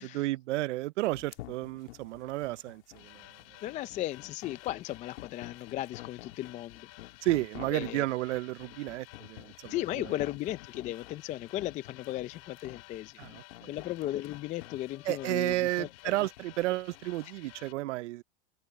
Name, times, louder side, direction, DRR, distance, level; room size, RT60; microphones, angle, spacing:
voice 1, 0.0-3.2 7.2-9.7 13.2-13.7 15.1-18.2, right 18 dB, 70° right, 0.6 m, -32 dB
sound 1, 1.1-17.4, left 16 dB, 65° left, 2.6 m, -50 dB
sound 2, 3.0-17.7, left 20 dB, 40° left, 4.3 m, -54 dB
voice 2, 3.6-7.3 7.7-8.1 9.7-13.2 13.7-16.3, left 14 dB, 20° left, 0.5 m, -36 dB
sound 3, 10.0-13.0 13.3-13.4 13.6-13.7 14.7-16.8, left 12 dB, 85° left, 5.9 m, -63 dB
open air
supercardioid pair, 135°, 37 cm